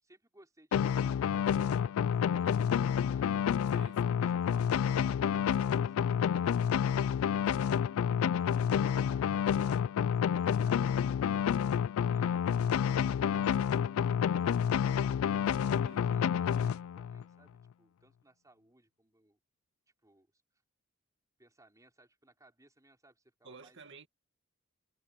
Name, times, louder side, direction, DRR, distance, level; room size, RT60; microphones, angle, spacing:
voice 1, 0.0-3.3 3.9-11.5 12.1-15.2 15.8-19.4 20.0-20.4 21.4-23.8, right 2 dB, 15° right, 4.4 m, -63 dB
sound 1, 0.7-17.2, left 8 dB, 80° left, 0.3 m, -29 dB
voice 2, 3.7-4.3 15.6-16.1 23.4-24.1, right 3 dB, 60° right, 2.1 m, -53 dB
head